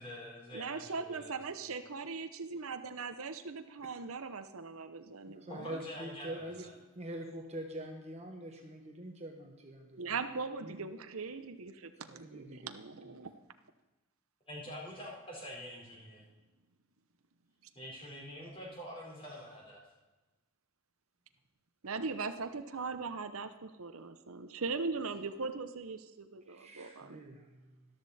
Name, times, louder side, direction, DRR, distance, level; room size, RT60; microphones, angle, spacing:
voice 1, 0.0-1.3 1.5-1.7 5.5-6.7 14.5-16.2 17.8-19.8, equal, 25° left, -3 dB, 4.5 m, -46 dB
voice 2, 0.5-5.8 10.0-13.3 21.8-27.2, right 4 dB, 80° right, 9 dB, 0.9 m, -40 dB
voice 3, 5.3-6.6 6.9-10.1 10.6-10.7 12.1-12.8 26.5-27.9, right 1 dB, 30° right, 3 dB, 1.3 m, -45 dB
13.5 x 12.5 x 4.3 m, 1.1 s
head